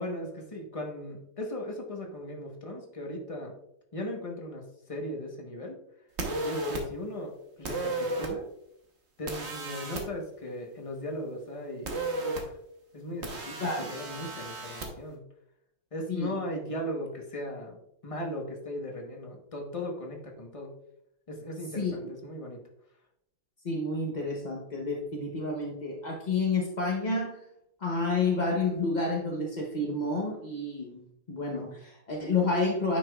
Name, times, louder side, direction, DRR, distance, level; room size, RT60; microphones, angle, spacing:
voice 1, 0.0-3.5 3.9-5.8 6.4-7.3 7.6-8.5 9.2-12.6 12.9-15.2 15.9-20.7 21.3-22.6, left 1 dB, 25° left, 1 dB, 0.8 m, -37 dB
sound 1, 6.2-6.8 7.6-8.3 9.3-10.0 11.9-12.4 13.2-14.9, right 2 dB, 40° right, 1.1 m, -33 dB
voice 2, 23.6-27.4 27.8-33.0, left 3 dB, 45° left, -1 dB, 0.5 m, -30 dB
9.6 x 6.2 x 2.4 m, 0.76 s
omnidirectional pair, 2.3 m